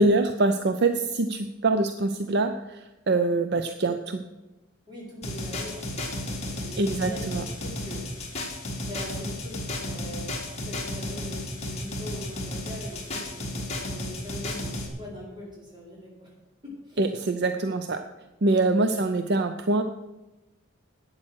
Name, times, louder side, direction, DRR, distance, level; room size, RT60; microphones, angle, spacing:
voice 1, 0.0-2.8 3.1-4.2 6.8-7.4 17.0-18.0 18.4-19.8, right 2 dB, 50° right, 8 dB, 0.6 m, -24 dB
voice 2, 4.9-8.5 8.9-16.3 16.6-17.1, left 1 dB, 20° right, -4 dB, 4.6 m, -42 dB
sound 1, 5.2-14.9, left 1 dB, 30° left, 2.3 m, -33 dB
12.0 x 8.9 x 6.3 m, 1.1 s
head